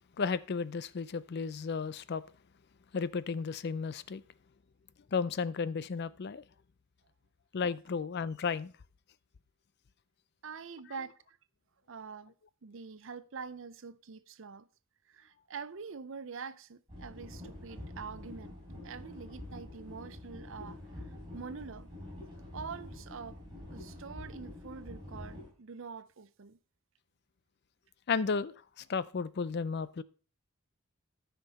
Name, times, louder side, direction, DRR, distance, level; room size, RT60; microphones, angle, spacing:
voice 1, 0.2-2.2 2.9-4.2 5.1-6.4 7.5-8.7 28.1-30.0, left 5 dB, 50° left, 0.4 m, -33 dB
voice 2, 10.4-11.2 11.9-12.3 12.6-14.7 15.1-18.5 18.8-21.9 22.5-23.4 23.7-26.6, right 5 dB, 65° right, 0.6 m, -45 dB
sound 1, 16.9-25.5, left 1 dB, 25° right, 5.9 m, -46 dB
13.5 x 5.9 x 4.1 m
head